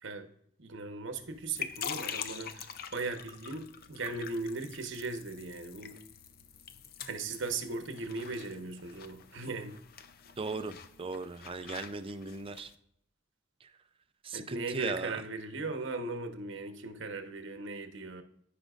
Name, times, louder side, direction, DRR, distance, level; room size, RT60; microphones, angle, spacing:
voice 1, 0.6-6.0 7.0-9.8 14.3-18.2, right 3 dB, 60° right, 7 dB, 1.0 m, -38 dB
sound 1, 1.2-12.8, left 8 dB, 45° left, 0.5 m, -45 dB
voice 2, 10.4-12.7 13.6-13.7 14.2-15.2, right 3 dB, 25° right, 11 dB, 0.4 m, -38 dB
15.0 x 5.1 x 2.5 m, 0.72 s
head